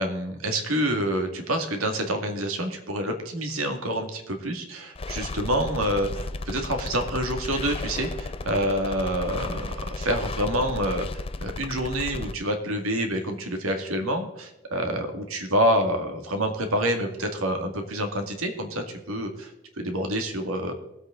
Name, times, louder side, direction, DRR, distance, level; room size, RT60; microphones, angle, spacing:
voice 1, 0.0-19.5 19.8-20.7, right 1 dB, 85° right, 5 dB, 2.1 m, -27 dB
sound 1, 5.0-12.3, left 3 dB, 25° left, 0.5 m, -34 dB
19.5 x 8.2 x 3.8 m, 0.89 s
head